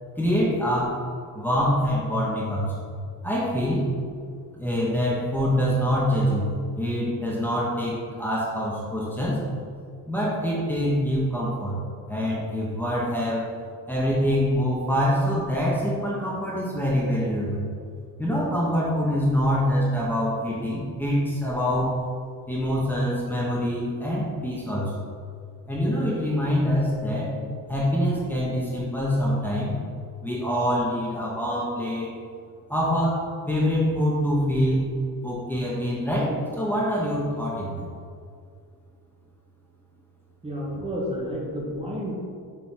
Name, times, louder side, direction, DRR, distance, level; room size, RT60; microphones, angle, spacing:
voice 1, 0.2-1.0 1.3-2.9 3.2-3.8 4.5-9.4 10.1-11.8 12.1-13.5 13.9-17.7 18.2-22.0 22.5-25.1 25.7-27.3 27.7-29.7 30.2-32.1 32.7-34.8 35.2-37.9, equal, 5° left, -7 dB, 1.5 m, -25 dB
voice 2, 40.4-42.1, equal, 15° right, -4 dB, 1.7 m, -30 dB
7.4 x 4.4 x 5.8 m, 2.3 s
cardioid pair, 140°, 37 cm